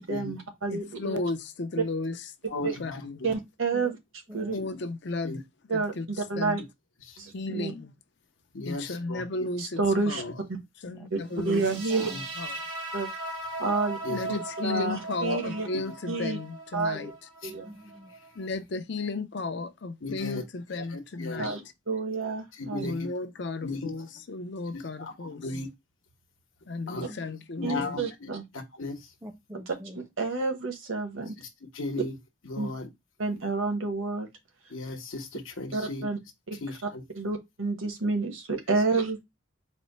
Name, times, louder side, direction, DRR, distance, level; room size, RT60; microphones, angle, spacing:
voice 1, 0.0-1.2 2.6-2.7 3.2-4.0 4.3-4.5 5.7-6.6 7.2-7.7 9.6-10.2 11.1-11.2 11.4-12.1 12.9-13.1 13.6-14.0 14.3-14.4 14.6-15.7 16.1-16.4 16.7-17.1 17.4-17.7 21.4-21.6 21.9-22.9 27.6-28.4 30.2-31.3 32.6-32.7 33.2-34.3 35.7-36.2 36.5-36.6 37.2-39.2, right 3 dB, 75° right, 1.1 m, -29 dB
voice 2, 0.7-2.2 2.6-3.2 4.5-5.4 5.7-6.1 6.4-6.6 7.3-7.9 8.7-10.3 10.8-11.6 12.4-12.6 14.0-17.1 18.4-21.7 22.8-25.4 26.7-28.0, left 3 dB, 55° left, 0.5 m, -34 dB
voice 3, 2.5-3.3 4.6-4.7 5.2-5.4 7.0-7.2 8.5-9.5 10.1-10.3 12.1-12.2 14.0-14.2 15.3-15.4 17.4-17.5 20.0-20.4 20.7-21.4 22.6-23.1 23.6-23.9 24.7-25.7 26.9-27.1 27.6-28.3 28.7-29.1 31.7-32.1 32.4-32.9 34.7-36.0 36.6-37.0, left 2 dB, 70° left, 1.0 m, -36 dB
sound 1, 11.4-18.5, right 2 dB, 90° right, 1.6 m, -39 dB
voice 4, 11.6-12.3 17.5-18.1 27.1-27.3 27.6-27.9 29.2-30.0, equal, 15° right, 0.5 m, -45 dB
4.2 x 2.2 x 4.0 m
head